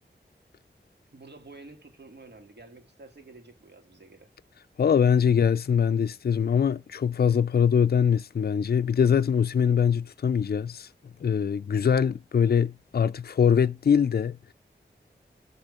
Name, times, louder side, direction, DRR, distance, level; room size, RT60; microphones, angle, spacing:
voice 1, 1.1-4.3, right 3 dB, 65° right, 2.4 m, -49 dB
voice 2, 4.8-10.9 11.2-14.5, left 7 dB, 55° left, 0.4 m, -23 dB
8.5 x 3.7 x 5.0 m
wide cardioid pair, 60°, 19 cm